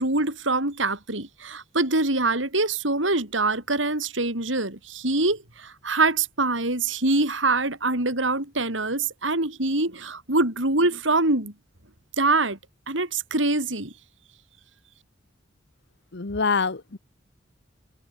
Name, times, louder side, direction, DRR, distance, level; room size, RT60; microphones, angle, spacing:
voice 1, 0.0-11.5 12.2-12.6 12.9-13.9, right 2 dB, 85° right, 6.4 m, -24 dB
voice 2, 16.1-17.0, left 4 dB, 65° left, 1.1 m, -25 dB
head